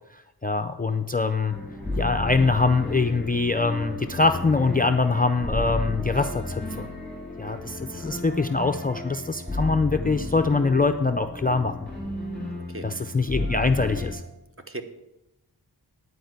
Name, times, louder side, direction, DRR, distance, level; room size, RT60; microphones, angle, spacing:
voice 1, 0.4-1.5 2.0-6.9 7.4-11.7 12.8-14.2, left 3 dB, 20° left, 7 dB, 0.4 m, -23 dB
sound 1, 1.5-14.1, left 1 dB, ahead, 3.6 m, -33 dB
voice 2, 12.7-13.2 14.6-14.8, right 2 dB, 30° right, 6 dB, 1.0 m, -39 dB
10.5 x 4.7 x 7.9 m, 0.92 s
wide cardioid pair, 110°, 42 cm